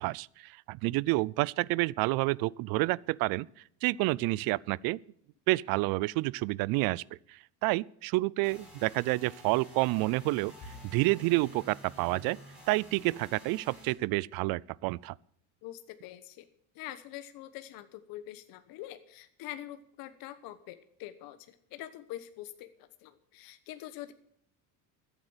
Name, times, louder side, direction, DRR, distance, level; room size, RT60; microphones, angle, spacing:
voice 1, 0.0-3.5 3.8-5.0 5.5-7.0 7.3-10.5 10.8-12.4 12.7-15.1, right 21 dB, 65° right, 0.5 m, -29 dB
sound 1, 8.4-13.9, equal, ahead, 6.4 m, -51 dB
Bowed string instrument, 10.6-14.1, equal, 45° left, 6.3 m, -56 dB
voice 2, 15.6-16.5 16.7-24.1, left 13 dB, 65° left, 1.1 m, -45 dB
14.0 x 8.3 x 7.9 m
cardioid pair, 130°, 38 cm